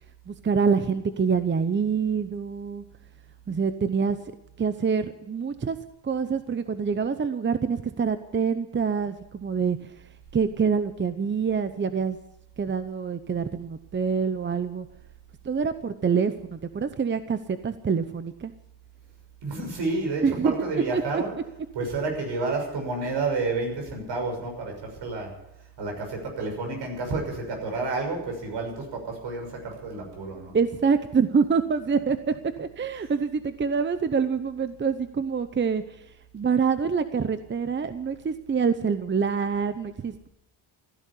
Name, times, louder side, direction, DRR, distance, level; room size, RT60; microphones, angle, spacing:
voice 1, 0.3-2.8 3.5-4.2 4.6-5.8 6.0-9.8 10.3-12.2 12.6-14.9 15.4-18.5 20.2-20.5 20.9-21.2 22.5-22.6 30.5-36.0 36.3-40.3, right 6 dB, 25° right, 11 dB, 0.8 m, -26 dB
voice 2, 19.4-21.3 21.7-25.3 25.8-30.5, right 3 dB, 70° right, 3 dB, 6.5 m, -30 dB
15.5 x 10.5 x 8.5 m, 0.84 s
cardioid pair, 100°, 44 cm